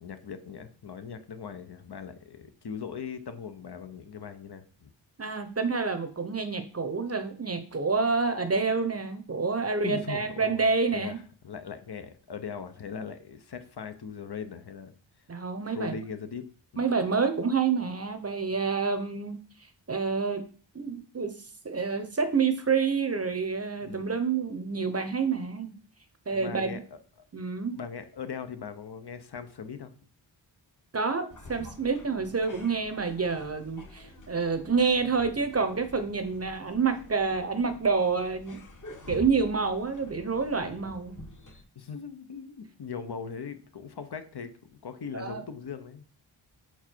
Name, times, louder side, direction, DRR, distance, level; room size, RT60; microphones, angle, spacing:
voice 1, 0.0-4.9 9.8-14.9 15.7-16.4 16.7-16.9 23.8-24.1 26.3-26.8 27.7-29.9 40.7-40.8 41.8-46.0, left 6 dB, 55° left, 9 dB, 0.9 m, -40 dB
voice 2, 5.2-11.2 15.3-15.9 16.8-19.4 19.9-20.4 20.7-21.3 21.6-25.7 26.3-26.7 27.3-27.8 30.9-38.6 39.1-41.2 45.1-45.4, right 5 dB, 30° right, 8 dB, 0.8 m, -28 dB
sound 1, 31.3-41.6, left 2 dB, 40° left, 1.4 m, -48 dB
5.7 x 4.6 x 4.5 m, 0.40 s
wide cardioid pair, 95°, 47 cm